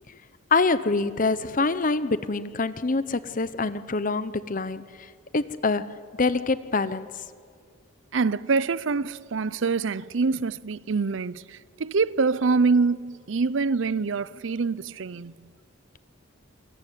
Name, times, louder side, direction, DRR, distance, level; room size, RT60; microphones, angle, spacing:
voice 1, 0.5-5.1 5.3-7.2, left 3 dB, 40° left, 0.9 m, -25 dB
voice 2, 8.1-15.3, right 4 dB, 65° right, 0.6 m, -25 dB
26.5 x 18.0 x 9.2 m
head